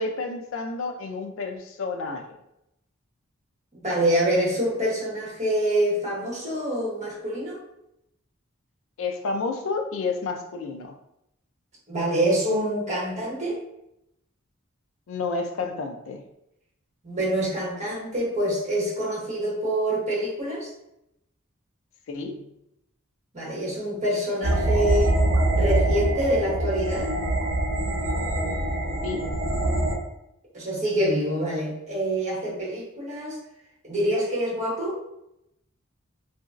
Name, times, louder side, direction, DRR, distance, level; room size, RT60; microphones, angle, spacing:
voice 1, 0.0-2.2 9.0-11.0 15.1-16.2 22.1-22.5 29.0-29.3, left 4 dB, 70° left, 4 dB, 0.4 m, -30 dB
voice 2, 3.7-7.6 11.9-13.6 17.0-20.7 23.3-25.2 25.6-27.1 30.5-33.4 33.8-35.0, right 1 dB, 35° right, -5 dB, 1.2 m, -26 dB
sound 1, 24.4-30.0, right 1 dB, 75° right, 0.6 m, -24 dB
2.9 x 2.5 x 2.4 m, 0.81 s
head